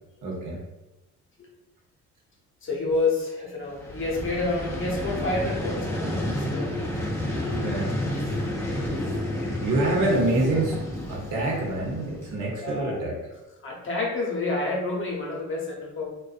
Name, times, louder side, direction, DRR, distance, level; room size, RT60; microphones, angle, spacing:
voice 1, 0.2-0.6 7.5-8.0 9.6-10.8 11.1-13.2, right 2 dB, 80° right, -2 dB, 0.8 m, -26 dB
voice 2, 2.6-7.0 8.8-9.2 9.6-9.7 12.6-13.0 13.6-16.1, left 3 dB, 40° left, -3 dB, 0.8 m, -29 dB
Vehicle, 3.7-12.7, left 1 dB, 10° left, 0.5 m, -30 dB
2.5 x 2.2 x 2.4 m, 1.0 s
cardioid pair, 90°, 30 cm